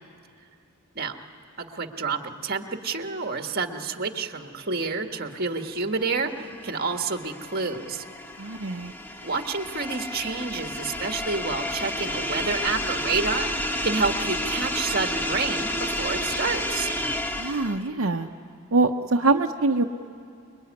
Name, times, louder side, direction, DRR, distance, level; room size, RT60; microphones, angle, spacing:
voice 1, 1.6-8.0 9.2-16.9, right 4 dB, 50° right, 5 dB, 1.7 m, -29 dB
sound 1, 6.0-17.9, left 1 dB, 10° left, 1.1 m, -31 dB
voice 2, 8.4-8.9 17.4-18.3 18.7-19.8, right 3 dB, 75° right, 2 dB, 0.9 m, -23 dB
27.0 x 23.0 x 9.7 m, 2.5 s
head